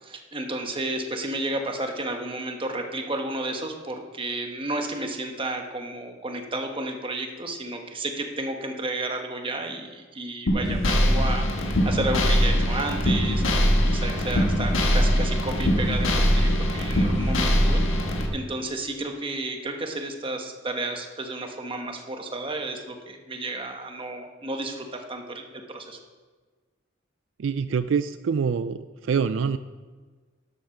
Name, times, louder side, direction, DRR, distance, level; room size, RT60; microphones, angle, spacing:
voice 1, 0.0-26.0, right 2 dB, 30° right, 4 dB, 1.3 m, -32 dB
sound 1, 10.5-18.3, equal, 90° left, 1.6 m, -22 dB
voice 2, 27.4-29.6, right 6 dB, 70° right, 13 dB, 0.4 m, -25 dB
12.0 x 8.1 x 5.9 m, 1.4 s
head